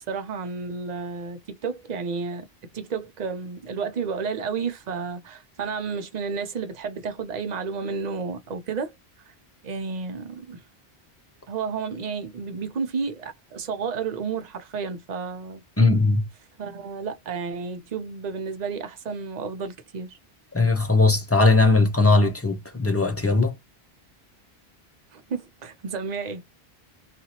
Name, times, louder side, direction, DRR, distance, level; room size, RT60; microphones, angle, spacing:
voice 1, 0.0-2.5 2.7-8.9 9.6-10.6 11.5-15.6 16.6-20.2 25.1-26.4, right 5 dB, 50° right, 0.7 m, -31 dB
voice 2, 15.8-16.3 20.5-23.5, left 3 dB, 20° left, 0.5 m, -19 dB
2.7 x 2.4 x 2.7 m
omnidirectional pair, 1.1 m